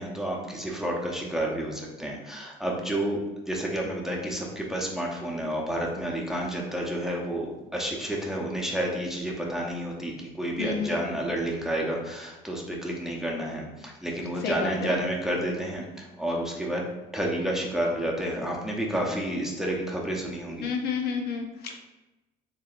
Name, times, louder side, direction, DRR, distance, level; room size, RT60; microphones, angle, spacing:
voice 1, 0.0-3.2 3.5-16.8 17.1-20.7, right 1 dB, ahead, -2 dB, 0.7 m, -30 dB
voice 2, 10.6-11.1 14.4-14.9 20.6-21.7, left 5 dB, 70° left, 3 dB, 0.6 m, -30 dB
4.6 x 3.1 x 2.5 m, 1.1 s
cardioid pair, 110°, 17 cm